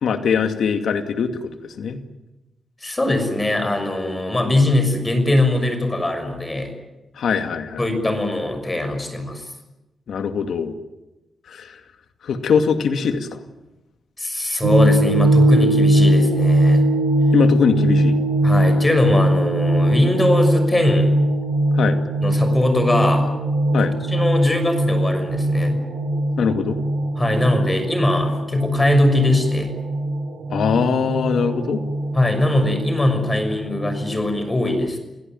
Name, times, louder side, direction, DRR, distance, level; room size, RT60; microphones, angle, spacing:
voice 1, 0.0-2.0 7.2-7.8 10.1-10.8 11.5-11.8 12.2-13.4 17.3-18.2 21.7-22.0 23.7-23.9 26.4-26.8 30.5-31.8, left 6 dB, 80° left, 8 dB, 2.4 m, -21 dB
voice 2, 2.8-6.7 7.8-9.5 14.2-16.8 18.4-21.1 22.2-23.3 23.8-25.8 27.2-29.7 32.1-35.0, left 1 dB, 20° left, 7 dB, 6.3 m, -21 dB
sound 1, 14.6-34.0, right 1 dB, 90° right, 6.5 m, -20 dB
29.5 x 17.0 x 9.3 m, 1.0 s
cardioid pair, 75°, 0 cm